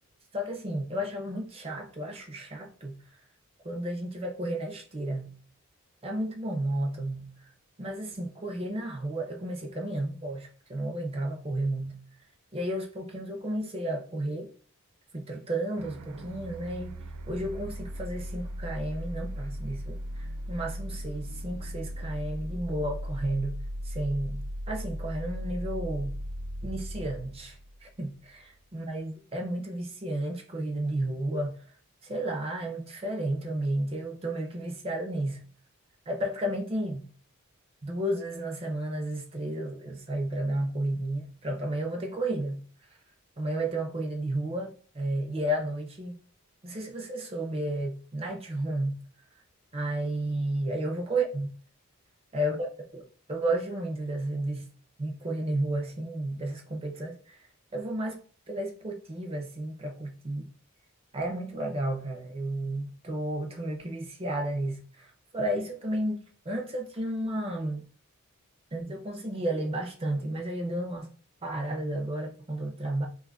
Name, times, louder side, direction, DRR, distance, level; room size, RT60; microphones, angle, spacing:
voice 1, 0.3-3.0 3.6-5.3 6.0-7.3 7.8-12.0 12.5-14.5 15.1-16.9 17.3-23.6 23.8-26.2 26.6-31.6 32.0-35.4 36.1-37.1 37.8-42.6 43.4-46.2 46.6-49.0 49.7-51.5 52.3-54.7 55.0-57.4 57.7-58.2 58.5-60.5 61.1-67.8 68.7-71.1 71.4-73.1, right 1 dB, 25° right, 0.5 m, -32 dB
sound 1, 15.8-28.5, equal, 85° right, 0.3 m, -37 dB
2.6 x 2.4 x 3.8 m
head